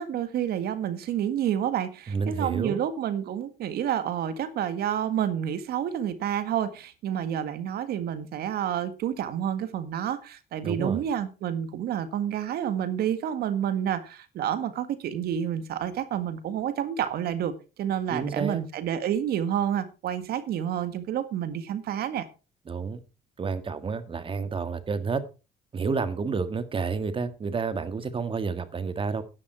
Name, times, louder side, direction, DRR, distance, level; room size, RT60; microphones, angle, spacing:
voice 1, 0.0-22.3, right 9 dB, 70° right, 12 dB, 1.8 m, -29 dB
voice 2, 2.1-2.8 10.6-11.0 18.1-18.6 22.7-23.0 23.4-25.2 25.7-29.2, right 5 dB, 30° right, 12 dB, 1.7 m, -30 dB
11.0 x 10.5 x 4.5 m, 0.31 s
cardioid pair, 110°, 17 cm